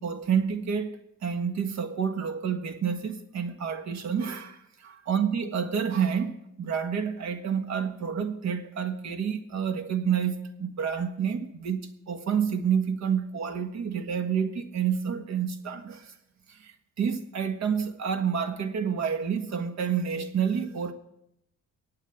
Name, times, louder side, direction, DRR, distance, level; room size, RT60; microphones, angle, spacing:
voice 1, 0.0-4.6 4.8-16.0 17.0-20.9, right 7 dB, 65° right, 1.5 m, -29 dB
24.0 x 8.8 x 3.7 m
cardioid pair, 90°, 30 cm